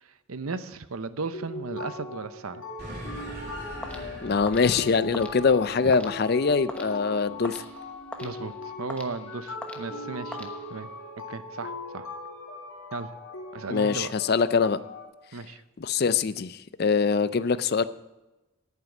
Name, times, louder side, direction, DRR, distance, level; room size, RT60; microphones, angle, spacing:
voice 1, 0.3-2.6 5.8-5.9 8.2-8.5 8.8-10.9 11.3-12.1 12.9-13.1 13.5-14.1 15.3-15.6, right 4 dB, 85° right, 12 dB, 0.8 m, -35 dB
sound 1, 1.3-15.1, left 2 dB, 75° left, 2.5 m, -40 dB
sound 2, 2.8-7.6, equal, 45° right, 3.3 m, -42 dB
sound 3, 3.8-11.1, left 1 dB, 5° left, 1.0 m, -44 dB
voice 2, 4.2-7.6 13.7-14.8 15.8-17.8, left 5 dB, 45° left, 15 dB, 0.4 m, -23 dB
11.0 x 9.4 x 6.0 m, 1.0 s
head